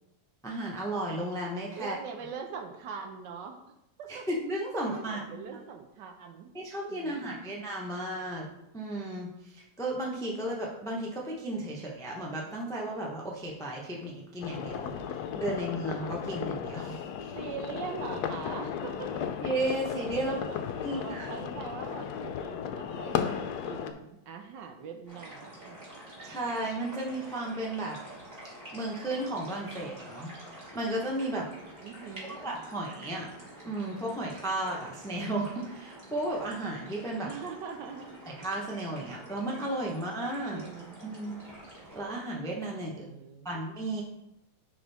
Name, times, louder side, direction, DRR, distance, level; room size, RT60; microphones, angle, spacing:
voice 1, 0.4-2.0 4.1-5.3 6.5-8.5 8.7-17.3 19.4-20.4 20.8-21.3 26.2-28.0 28.7-30.3 30.7-31.5 32.3-33.3 33.6-37.3 38.3-40.6 41.0-41.4 41.9-43.0 43.4-44.0, right 1 dB, 5° left, -2 dB, 0.4 m, -34 dB
voice 2, 1.7-3.6 4.0-4.3 4.7-6.5 6.9-7.5 17.3-19.3 20.1-25.9 31.8-32.4 37.2-38.2 40.4-41.0 42.8-43.6, right 6 dB, 75° right, 5 dB, 1.3 m, -42 dB
sound 1, 14.4-23.9, left 8 dB, 75° left, 0.9 m, -35 dB
sound 2, 25.1-42.0, right 1 dB, 30° right, 2.0 m, -48 dB
9.9 x 3.8 x 3.5 m, 0.86 s
omnidirectional pair, 2.1 m